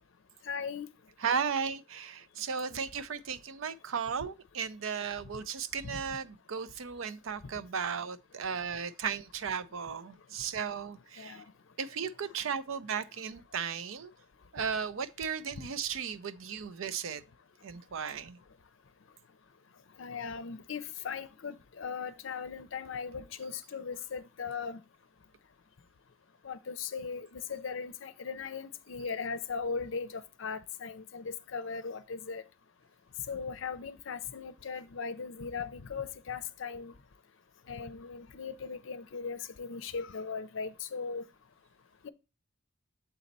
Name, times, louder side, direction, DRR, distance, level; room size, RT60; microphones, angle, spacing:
voice 1, 0.5-0.9 2.7-2.8 11.2-11.4 20.0-24.8 26.4-32.4 33.3-36.9 37.7-41.2 42.0-42.1, left 5 dB, 70° left, 0.5 m, -38 dB
voice 2, 1.2-11.4 11.8-14.1 14.5-17.2 17.6-18.4, right 6 dB, 75° right, 0.5 m, -35 dB
6.9 x 4.2 x 3.9 m
head